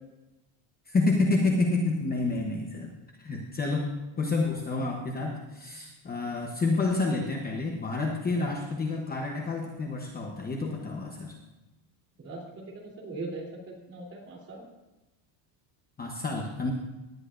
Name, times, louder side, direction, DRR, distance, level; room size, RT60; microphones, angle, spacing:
voice 1, 0.9-11.4 16.0-16.7, left 3 dB, 20° left, 1 dB, 0.9 m, -29 dB
voice 2, 12.2-14.6, right 3 dB, 30° right, -2 dB, 3.2 m, -40 dB
18.5 x 10.5 x 2.5 m, 1.0 s
cardioid pair, 160°, 49 cm